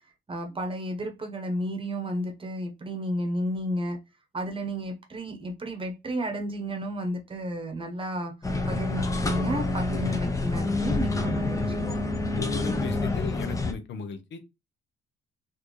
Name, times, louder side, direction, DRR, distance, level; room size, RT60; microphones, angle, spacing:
voice 1, 0.3-4.0 4.3-8.3 8.7-11.6, equal, 25° right, 1.0 m, -32 dB
sound 1, 8.4-13.7, left 2 dB, 15° left, 0.6 m, -27 dB
voice 2, 12.4-14.4, left 6 dB, 65° left, 0.8 m, -35 dB
4.1 x 2.8 x 3.2 m
cardioid pair, 110°, 20 cm